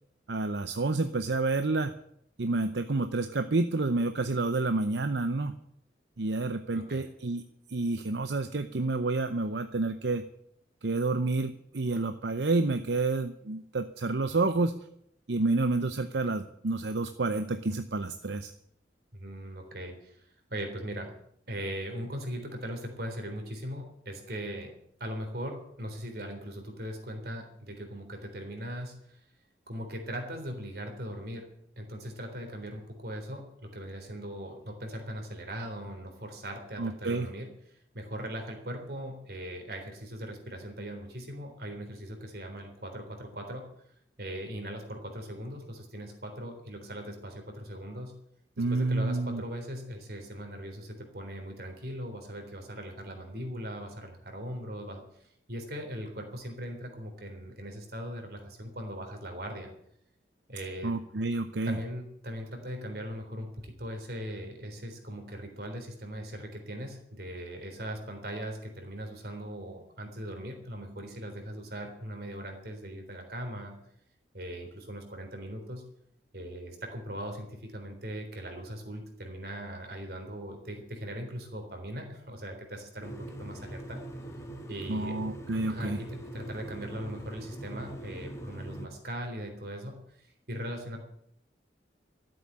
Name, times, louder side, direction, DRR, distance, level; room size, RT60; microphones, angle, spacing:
voice 1, 0.3-2.0 2.4-5.6 6.2-7.4 7.7-10.2 10.8-14.7 15.3-18.5 36.8-37.3 48.6-49.4 60.8-61.8 84.9-86.0, right 3 dB, 80° right, 9 dB, 0.8 m, -29 dB
voice 2, 6.7-7.0 19.1-21.1 21.5-24.7 25.0-29.2 29.7-31.5 31.8-37.5 37.9-43.6 44.2-48.1 48.6-55.0 55.5-59.7 60.5-60.9 61.6-73.7 74.3-75.8 76.3-84.0 84.7-85.2 85.7-91.0, equal, 60° right, 3 dB, 3.7 m, -39 dB
sound 1, 83.0-88.9, right 1 dB, 15° left, 1.5 m, -42 dB
13.5 x 7.9 x 9.9 m, 0.71 s
head